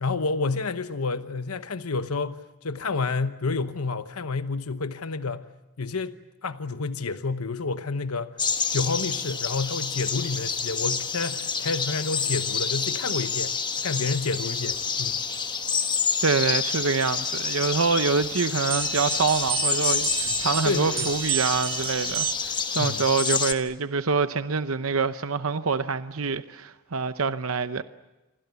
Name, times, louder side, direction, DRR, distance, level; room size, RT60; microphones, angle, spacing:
voice 1, 0.0-5.5 5.8-6.1 6.4-8.4 8.7-13.6 13.8-15.2 20.6-21.1 22.8-23.0, left 4 dB, 90° left, 1.0 m, -29 dB
sound 1, 8.4-23.5, left 6 dB, 20° left, 1.2 m, -28 dB
voice 2, 16.2-27.8, right 4 dB, 75° right, 0.8 m, -26 dB
sound 2, 18.7-22.6, right 13 dB, 60° right, 1.5 m, -31 dB
28.5 x 23.5 x 8.2 m
head